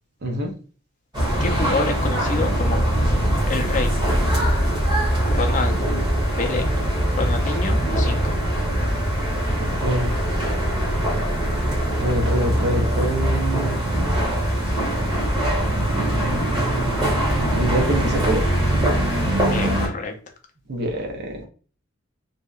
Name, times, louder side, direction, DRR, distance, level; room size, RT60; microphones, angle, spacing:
voice 1, 0.2-0.5 2.7-2.8 5.1-5.4 9.6-10.2 12.0-13.8 16.0-16.6 17.5-18.5 20.7-21.4, right 1 dB, 55° right, 2 dB, 0.6 m, -26 dB
sound 1, 1.1-19.9, right 1 dB, 20° right, 0.9 m, -22 dB
voice 2, 1.4-2.8 3.5-4.0 5.3-5.9 6.4-6.7 7.1-8.4 19.5-20.2, left 3 dB, 40° left, 3 dB, 0.4 m, -27 dB
2.7 x 2.1 x 2.3 m, 0.39 s
head